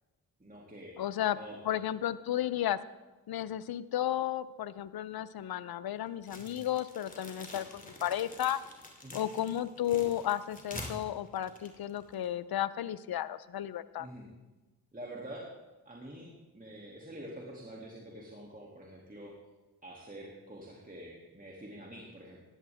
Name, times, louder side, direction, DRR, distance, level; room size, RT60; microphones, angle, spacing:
voice 1, 0.4-1.0 1.3-1.6 6.4-6.6 9.0-9.2 14.0-14.3 14.9-15.5 15.9-19.3 19.8-22.4, right 1 dB, 20° right, -3 dB, 2.5 m, -47 dB
voice 2, 1.0-1.4 1.6-2.8 3.3-8.6 9.1-14.1, left 12 dB, 65° left, 16 dB, 0.7 m, -33 dB
sound 1, 6.2-12.3, left 1 dB, 20° left, 2.7 m, -47 dB
15.5 x 11.0 x 3.5 m, 1.2 s
supercardioid pair, 50°, 39 cm